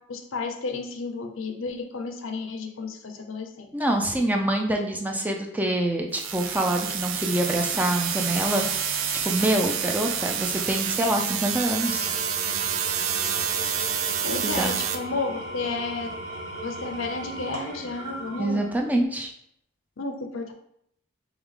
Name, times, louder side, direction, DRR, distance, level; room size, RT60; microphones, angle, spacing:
voice 1, 0.1-3.7 14.2-16.1 16.6-18.6 20.0-20.5, left 3 dB, 75° left, 5 dB, 0.6 m, -32 dB
voice 2, 3.7-8.7 9.2-12.1 14.4-14.8 18.4-19.3, right 1 dB, 10° right, 2 dB, 0.4 m, -25 dB
sound 1, 6.1-15.0, right 8 dB, 85° right, 0.5 m, -28 dB
Engine / Tools, 11.5-19.0, right 1 dB, 70° right, 1.2 m, -37 dB
3.5 x 3.5 x 3.6 m, 0.72 s
head